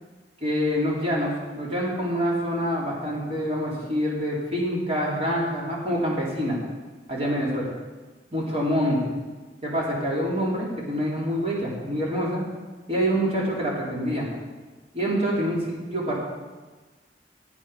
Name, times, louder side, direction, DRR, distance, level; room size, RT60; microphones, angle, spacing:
voice 1, 0.4-6.6 7.1-7.7 8.3-9.1 9.6-12.4 12.9-14.3 14.9-16.2, equal, 35° right, -5 dB, 3.8 m, -26 dB
15.0 x 8.9 x 5.1 m, 1.3 s
head